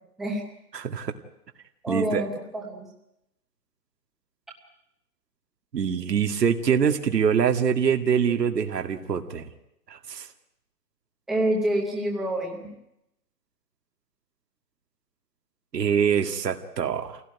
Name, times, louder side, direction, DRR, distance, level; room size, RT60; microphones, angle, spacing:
voice 1, 0.7-1.1 1.9-2.2 5.7-9.5 9.9-10.3 15.7-17.2, right 7 dB, 90° right, 6 dB, 2.1 m, -24 dB
voice 2, 1.8-2.9 11.3-12.7, right 1 dB, ahead, -2 dB, 0.8 m, -27 dB
24.5 x 17.0 x 9.4 m, 0.84 s
hypercardioid pair, 170°, 48 cm